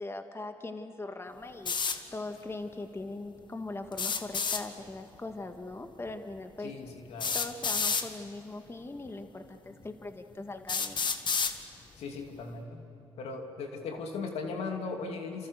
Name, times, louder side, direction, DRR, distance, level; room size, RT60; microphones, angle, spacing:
voice 1, 0.0-6.8 7.3-11.0, left 2 dB, 25° left, 7 dB, 1.8 m, -41 dB
sound 1, 1.7-2.0 3.9-4.6 6.1-6.2 7.2-8.1 9.1-9.2 9.8-9.9 10.7-11.6, left 5 dB, 50° left, 1.7 m, -29 dB
voice 2, 6.6-7.4 12.0-12.8 13.2-15.5, left 4 dB, 75° left, 3 dB, 2.9 m, -38 dB
28.5 x 27.5 x 6.6 m, 2.9 s
supercardioid pair, 60°, 10 cm